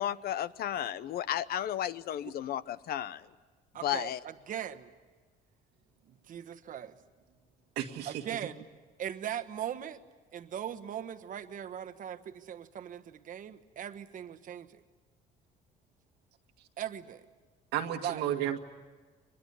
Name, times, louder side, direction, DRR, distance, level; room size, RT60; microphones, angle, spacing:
voice 1, 0.0-3.3 3.8-4.2, left 11 dB, 65° left, 16 dB, 0.8 m, -33 dB
voice 2, 3.7-4.9 6.1-7.0 8.0-8.6 9.0-10.0 10.3-14.8 16.8-17.2 18.0-18.2, right 10 dB, 50° right, 8 dB, 1.3 m, -39 dB
voice 3, 7.8-8.1 17.7-18.6, right 10 dB, 90° right, 5 dB, 1.9 m, -32 dB
24.0 x 21.5 x 9.8 m, 1.4 s
cardioid pair, 110°, 17 cm